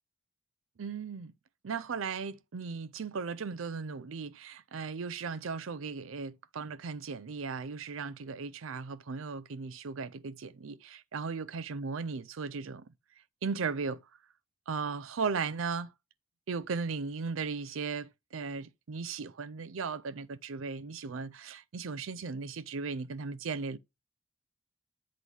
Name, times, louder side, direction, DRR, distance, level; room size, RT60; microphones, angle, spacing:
voice 1, 0.8-1.3 1.6-12.9 13.4-14.0 14.7-15.9 16.5-23.8, right 5 dB, 85° right, 0.5 m, -37 dB
8.2 x 3.1 x 5.4 m
head